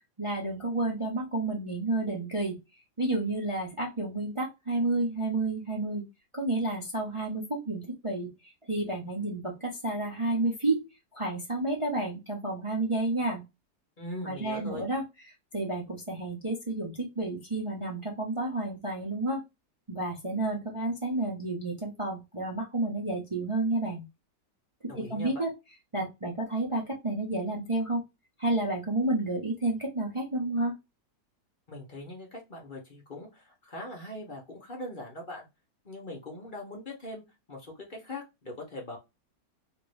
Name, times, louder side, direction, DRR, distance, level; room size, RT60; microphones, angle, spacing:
voice 1, 0.2-2.6 3.0-6.0 6.3-10.8 11.1-13.4 14.2-15.0 15.5-19.4 19.9-24.0 24.9-25.5 25.9-28.0 28.4-30.7, right 2 dB, 30° right, -2 dB, 0.5 m, -30 dB
voice 2, 14.0-14.8 24.9-25.4 31.7-35.5 35.8-37.2 37.5-39.0, left 1 dB, 40° left, 0 dB, 0.8 m, -41 dB
2.9 x 2.6 x 3.1 m, 0.23 s
omnidirectional pair, 1.9 m